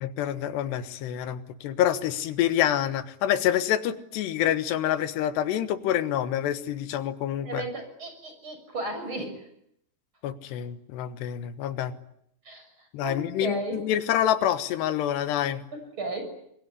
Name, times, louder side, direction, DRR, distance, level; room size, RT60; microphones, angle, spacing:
voice 1, 0.0-7.6 10.2-11.9 12.9-15.6, left 11 dB, 85° left, 11 dB, 3.5 m, -27 dB
voice 2, 7.4-9.4 12.4-13.8 15.7-16.2, right 2 dB, 30° right, 6 dB, 7.3 m, -35 dB
27.0 x 21.5 x 9.9 m, 0.74 s
omnidirectional pair, 4.7 m